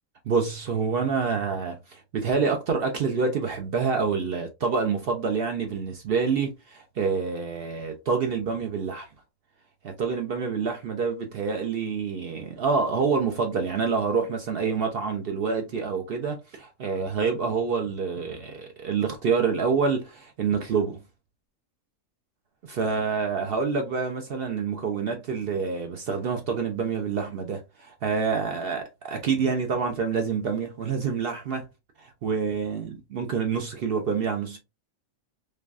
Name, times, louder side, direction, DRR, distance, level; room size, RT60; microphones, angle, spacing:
voice 1, 0.3-9.1 9.8-21.0 22.6-31.7 32.0-34.6, right 5 dB, 60° right, 0.6 m, -27 dB
3.3 x 2.2 x 2.4 m
omnidirectional pair, 1.4 m